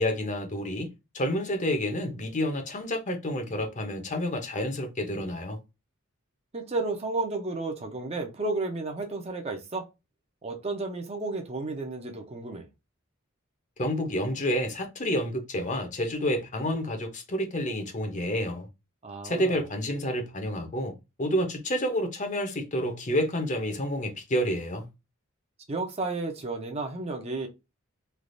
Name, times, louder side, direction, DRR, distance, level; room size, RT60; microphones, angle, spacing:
voice 1, 0.0-5.6 13.8-18.7 19.2-24.9, equal, 35° left, 0.7 m, -29 dB
voice 2, 6.5-9.9 10.4-12.7 19.0-19.6 25.7-27.5, right 3 dB, 30° right, 0.6 m, -32 dB
3.3 x 2.4 x 2.5 m
head